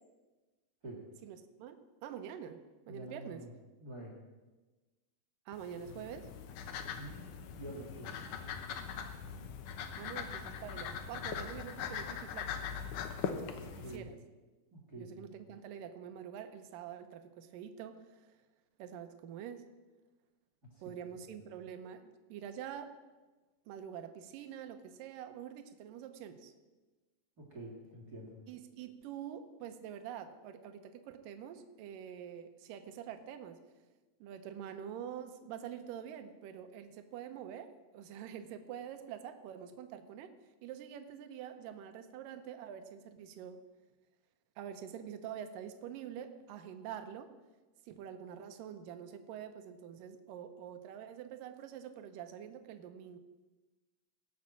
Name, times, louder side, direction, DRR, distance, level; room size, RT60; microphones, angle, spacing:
voice 1, 1.2-3.4 5.5-6.3 10.0-12.5 13.4-14.2 15.0-18.3 18.8-19.7 20.8-23.0 23.7-26.5 28.5-33.6 34.2-40.3 40.6-43.6 44.6-47.3 47.8-53.2, right 9 dB, 75° right, 8 dB, 2.2 m, -46 dB
voice 2, 2.9-3.5 3.8-4.1 7.0-8.1 13.8-14.1 14.7-15.3 27.4-28.3, right 1 dB, 30° right, -2 dB, 1.9 m, -47 dB
sound 1, 5.5-14.0, left 7 dB, 75° left, 2.0 m, -41 dB
18.5 x 6.2 x 7.3 m, 1.2 s
omnidirectional pair, 4.7 m